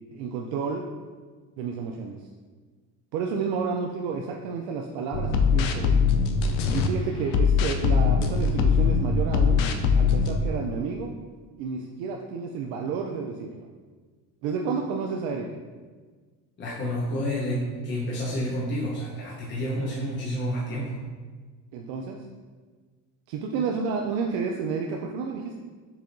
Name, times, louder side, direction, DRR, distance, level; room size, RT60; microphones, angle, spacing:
voice 1, 0.1-0.8 1.6-2.2 3.1-6.1 6.7-9.6 10.0-11.1 11.6-13.7 14.4-15.5 21.7-22.2 23.3-25.5, right 5 dB, 90° right, 2 dB, 0.5 m, -30 dB
sound 1, 5.1-6.9 7.3-10.4, left 5 dB, 90° left, 0.6 m, -22 dB
voice 2, 16.6-21.0, equal, 30° left, -6 dB, 0.9 m, -29 dB
7.0 x 2.8 x 2.6 m, 1.4 s
cardioid pair, 125°, 39 cm